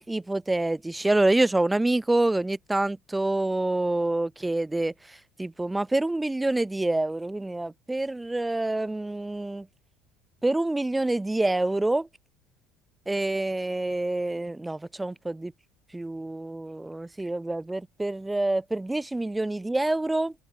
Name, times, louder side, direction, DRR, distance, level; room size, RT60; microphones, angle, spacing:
voice 1, 0.0-9.7 10.4-12.1 13.1-15.5 15.9-20.3, right 2 dB, 10° right, 0.4 m, -27 dB
open air
hypercardioid pair, 80°, 0 cm